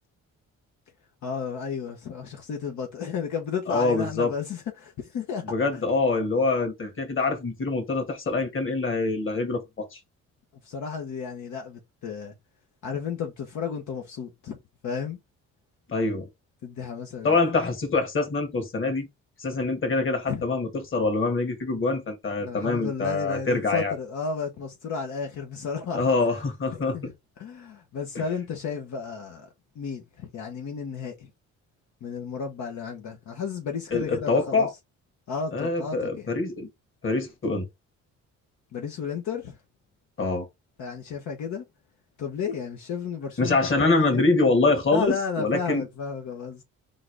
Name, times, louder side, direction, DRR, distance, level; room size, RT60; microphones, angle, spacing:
voice 1, 1.2-5.4 5.7-5.8 10.6-12.3 12.8-14.6 14.8-15.2 16.6-17.4 20.3-20.5 22.4-26.1 26.7-29.5 29.7-31.3 32.0-34.7 35.3-36.3 38.7-39.6 40.8-41.6 42.2-44.2 44.9-46.6, left 6 dB, 70° left, 1.1 m, -33 dB
voice 2, 3.7-4.3 5.5-10.0 15.9-16.3 17.2-19.1 19.4-24.0 25.9-27.0 28.1-28.2 33.9-34.7 35.5-36.7 37.0-37.7 40.2-40.5 43.4-45.8, left 3 dB, 40° left, 2.0 m, -25 dB
3.8 x 2.6 x 4.7 m
cardioid pair, 90°, 30 cm